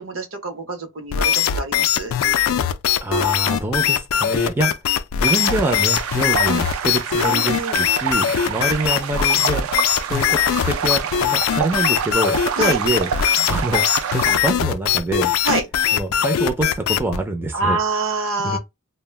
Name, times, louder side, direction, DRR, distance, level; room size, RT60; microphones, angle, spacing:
voice 1, 0.0-2.1 7.3-7.9 12.5-12.8 15.4-15.7 17.5-18.6, right 3 dB, 70° right, 0.7 m, -26 dB
sound 1, 1.1-17.2, left 9 dB, 80° left, 0.3 m, -20 dB
voice 2, 3.0-4.7 5.2-9.7 10.1-13.1 13.5-13.8 14.1-15.3 15.9-17.8 18.4-18.6, right 2 dB, 10° right, 0.3 m, -25 dB
sound 2, 5.2-14.4, right 8 dB, 85° right, 0.4 m, -27 dB
2.3 x 2.1 x 3.2 m
head